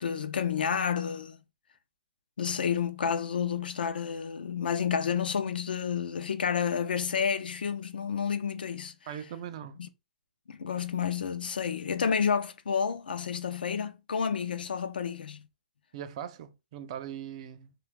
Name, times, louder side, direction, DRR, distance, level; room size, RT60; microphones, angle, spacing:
voice 1, 0.0-1.4 2.4-8.9 9.8-9.9 10.5-15.5, left 7 dB, 85° left, 0.4 m, -30 dB
voice 2, 9.1-9.8 15.9-17.7, right 9 dB, 40° right, 0.4 m, -40 dB
2.4 x 2.3 x 3.2 m
hypercardioid pair, 155°, 5 cm